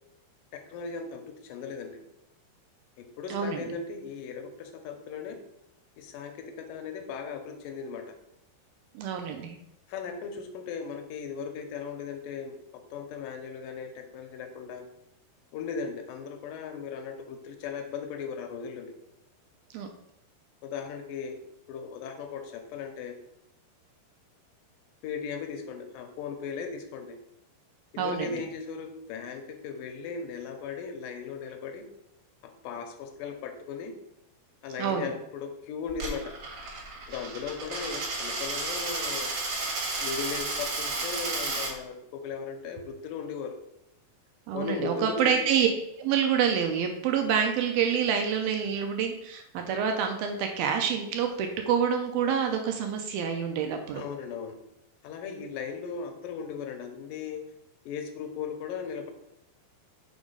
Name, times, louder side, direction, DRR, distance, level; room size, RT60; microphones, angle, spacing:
voice 1, 0.7-1.2 1.5-2.0 3.0-5.4 6.0-8.0 9.9-12.6 12.9-14.8 15.5-18.9 20.6-21.4 21.7-23.2 25.0-27.2 27.9-31.8 32.4-33.9 34.6-36.4 37.1-39.3 40.0-43.6 44.5-45.3 53.9-54.6 55.0-57.4 57.9-59.1, left 6 dB, 85° left, 5 dB, 2.0 m, -37 dB
voice 2, 3.3-3.7 9.0-9.6 19.7-19.9 28.0-28.4 34.8-35.1 37.1-37.3 44.5-45.7 46.0-54.0, right 7 dB, 80° right, 4 dB, 2.2 m, -27 dB
Coin (dropping), 35.9-41.7, right 3 dB, 50° right, 1.6 m, -32 dB
6.0 x 3.8 x 5.4 m, 0.80 s
omnidirectional pair, 4.7 m